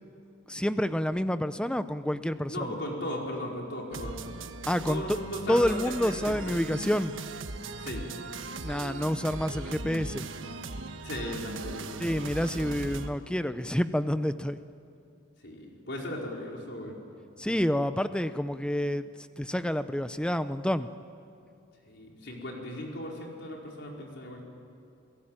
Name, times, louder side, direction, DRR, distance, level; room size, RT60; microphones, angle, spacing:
voice 1, 0.5-2.8 4.7-5.2 5.5-7.1 8.6-10.3 12.0-14.6 17.4-19.0 19.4-20.9, equal, 5° left, 12 dB, 0.7 m, -28 dB
voice 2, 2.5-4.2 4.9-6.6 7.8-8.1 11.0-12.1 15.4-16.9 21.8-24.4, left 1 dB, 60° left, -1 dB, 4.9 m, -37 dB
sound 1, 3.9-13.1, right 3 dB, 80° right, 1.3 m, -39 dB
28.5 x 17.5 x 9.0 m, 2.6 s
head